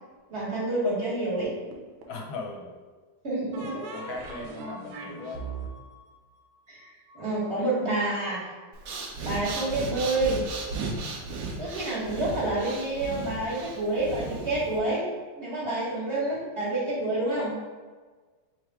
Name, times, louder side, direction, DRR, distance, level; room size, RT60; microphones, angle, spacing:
voice 1, 0.3-1.5 3.2-3.8 6.7-6.8 7.1-8.5 9.2-10.4 11.6-15.0 15.4-17.5, right 2 dB, 40° right, -7 dB, 1.2 m, -28 dB
sound 1, 1.4-2.3 3.5-7.2, right 3 dB, 85° right, 1.5 m, -41 dB
voice 2, 2.1-2.7 3.8-5.5 15.6-15.7, left 3 dB, 80° left, 1 dB, 1.4 m, -38 dB
Breathing, 8.7-14.8, right 3 dB, 65° right, 1.1 m, -35 dB
3.5 x 3.2 x 4.6 m, 1.4 s
omnidirectional pair, 2.3 m